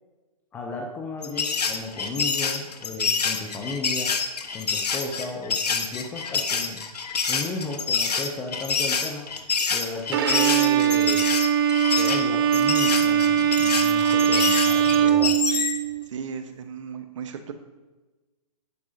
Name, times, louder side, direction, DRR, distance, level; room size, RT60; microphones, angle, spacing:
voice 1, 0.5-4.1 4.5-6.8 7.3-9.3 9.7-11.3 12.0-15.4, left 3 dB, 10° left, 2 dB, 0.5 m, -34 dB
sound 1, 1.2-15.8, left 5 dB, 80° left, 1.2 m, -27 dB
Bowed string instrument, 10.1-16.0, right 9 dB, 35° right, 0.6 m, -21 dB
voice 2, 16.1-17.5, right 7 dB, 50° right, 8 dB, 1.0 m, -36 dB
11.0 x 9.9 x 2.7 m, 1.2 s
hypercardioid pair, 155°, 20 cm